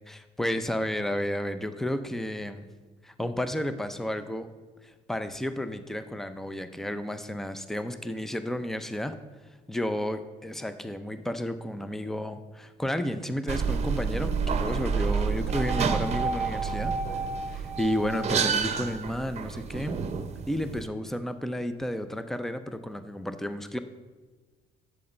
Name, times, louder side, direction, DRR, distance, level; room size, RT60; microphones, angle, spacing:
voice 1, 0.1-2.6 3.0-4.5 4.8-9.2 9.7-17.0 17.5-20.1 20.5-23.8, left 1 dB, ahead, 10 dB, 0.6 m, -32 dB
sound 1, 13.5-20.9, right 5 dB, 40° right, 0.8 m, -29 dB
10.5 x 7.8 x 4.4 m, 1.3 s
cardioid pair, 110°, 17 cm